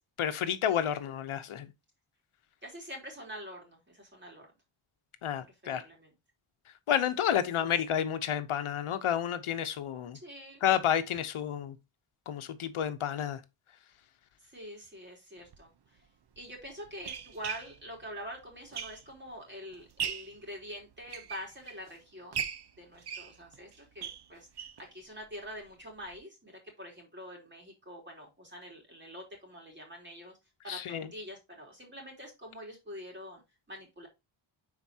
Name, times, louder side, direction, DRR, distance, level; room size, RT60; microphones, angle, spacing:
voice 1, 0.2-1.7 5.2-5.8 6.9-10.2 10.6-11.8 12.3-13.4 30.7-31.1, left 9 dB, 75° left, 1.0 m, -30 dB
voice 2, 2.6-4.5 5.6-6.1 7.6-7.7 10.2-10.6 14.4-16.1 16.4-22.4 22.8-30.4 30.6-33.4 33.7-34.1, equal, 20° right, 3.6 m, -45 dB
sound 1, 15.4-15.6 16.4-19.3 19.7-20.4 20.9-21.9 22.3-24.9 25.2-25.3 25.6-25.7 26.1-26.2, right 7 dB, 50° right, 0.8 m, -39 dB
10.5 x 4.5 x 2.8 m
wide cardioid pair, 140°, 49 cm